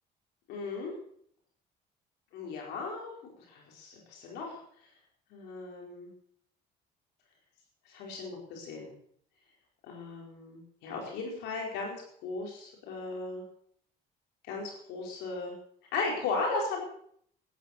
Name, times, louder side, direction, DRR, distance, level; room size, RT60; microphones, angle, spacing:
voice 1, 0.5-0.9 2.3-3.1 3.5-4.6 5.3-6.1 7.9-8.9 9.9-12.0 12.2-13.4 14.4-15.6 15.9-16.8, left 3 dB, 90° left, 0 dB, 4.6 m, -36 dB
14.0 x 10.5 x 6.5 m, 0.64 s
cardioid pair, 110°, 17 cm